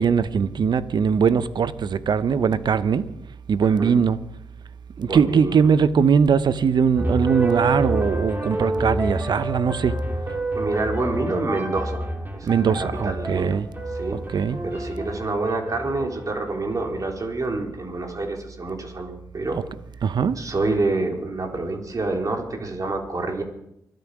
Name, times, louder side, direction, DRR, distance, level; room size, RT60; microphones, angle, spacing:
voice 1, 0.0-3.1 3.5-4.2 5.0-10.0 12.4-13.7 14.3-14.6 20.0-20.4, right 6 dB, 60° right, 0.8 m, -20 dB
voice 2, 3.6-4.0 5.1-5.6 10.5-12.1 12.3-13.6 13.9-14.2 14.6-19.6 20.4-23.4, right 2 dB, 45° right, 3.7 m, -27 dB
sound 1, 7.0-17.2, right 1 dB, 25° right, 2.9 m, -29 dB
24.5 x 9.2 x 4.9 m
supercardioid pair, 40°, 8 cm